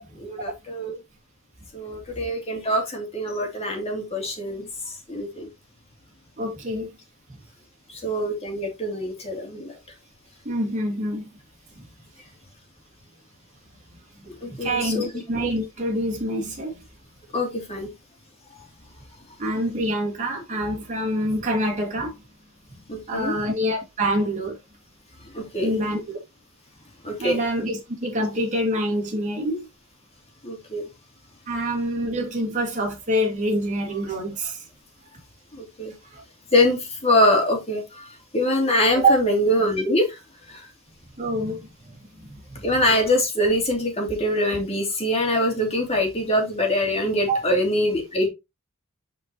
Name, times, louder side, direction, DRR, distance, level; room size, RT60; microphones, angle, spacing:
voice 1, 0.2-1.0 1.7-5.5 7.9-9.7 14.2-15.1 17.3-17.9 18.5-18.6 22.9-23.4 25.3-25.9 27.0-27.4 30.4-30.9 35.5-35.9 36.5-40.2 40.5-40.7 42.6-48.3, left 1 dB, 30° left, 2.7 m, -24 dB
voice 2, 6.4-6.9 10.4-11.3 11.8-11.9 14.5-16.8 19.4-22.1 23.1-24.6 25.6-26.0 27.2-29.7 31.5-34.6 36.1-36.2 38.9-39.1 41.2-41.7 42.3-42.6 47.3-47.4, right 1 dB, 35° right, 2.5 m, -26 dB
10.0 x 4.6 x 2.9 m
head